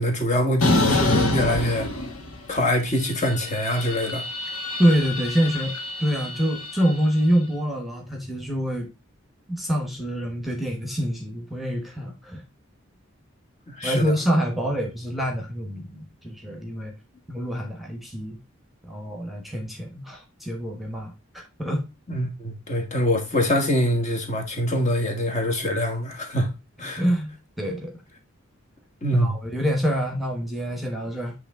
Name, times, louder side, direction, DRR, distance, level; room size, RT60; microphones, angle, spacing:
voice 1, 0.0-1.9 2.5-4.2 13.8-14.1 22.1-26.5 26.8-27.0 29.0-29.4, equal, 35° left, 1.4 m, -24 dB
sound 1, 0.6-2.6 2.9-7.2, left 2 dB, 85° left, 1.4 m, -27 dB
voice 2, 4.8-5.7 6.0-8.9 9.6-12.4 13.8-16.9 17.3-18.4 18.9-21.9 27.0-27.9 29.1-31.3, equal, ahead, 1.1 m, -26 dB
8.3 x 3.2 x 3.6 m
head